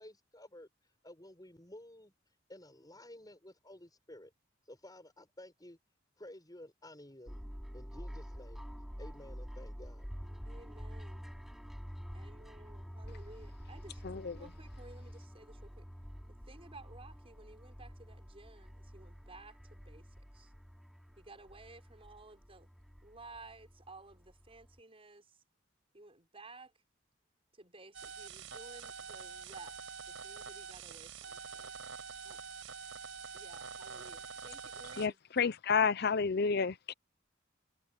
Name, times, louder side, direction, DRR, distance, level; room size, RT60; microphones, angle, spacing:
voice 1, 0.0-4.3 4.6-5.8 6.2-7.4 7.7-8.6 9.0-10.1, left 1 dB, 20° left, 7.0 m, -53 dB
sound 1, 7.3-24.8, equal, ahead, 2.7 m, -48 dB
voice 2, 10.4-11.2 12.1-15.9 16.3-20.5 21.2-22.7 23.0-25.4 25.9-26.7 27.5-31.7 32.2-32.4 33.3-35.2, right 2 dB, 30° right, 6.3 m, -55 dB
voice 3, 14.0-14.4 35.0-36.9, left 5 dB, 55° left, 0.6 m, -30 dB
sound 2, 27.9-35.1, right 5 dB, 85° right, 4.8 m, -46 dB
head